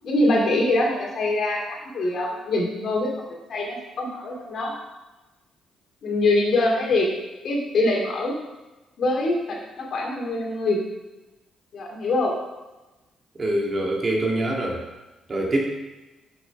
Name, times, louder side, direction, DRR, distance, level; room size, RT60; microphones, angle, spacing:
voice 1, 0.0-4.7 6.0-7.1 7.4-8.4 9.0-10.8 11.7-12.4, left 2 dB, 60° left, -1 dB, 2.4 m, -24 dB
voice 2, 13.4-14.8 15.3-15.6, right 1 dB, 35° right, -1 dB, 2.0 m, -24 dB
6.6 x 6.0 x 5.9 m, 1.1 s
cardioid pair, 90°, 0 cm